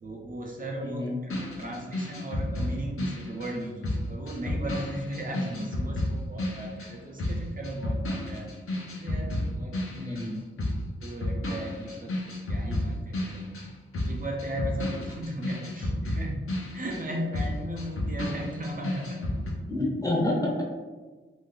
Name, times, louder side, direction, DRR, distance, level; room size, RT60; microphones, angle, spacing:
voice 1, 0.0-8.5 8.8-9.8 10.0-10.3 11.0-12.1 12.5-13.5 14.1-19.3, right 1 dB, 40° right, -1 dB, 0.5 m, -36 dB
voice 2, 0.8-1.2 5.4-5.6 9.9-10.4 19.7-20.6, left 1 dB, 15° left, -3 dB, 0.6 m, -29 dB
sound 1, 1.3-10.3 10.6-19.5, left 1 dB, 85° left, 0.8 m, -32 dB
3.1 x 2.6 x 3.7 m, 1.3 s
wide cardioid pair, 145°, 21 cm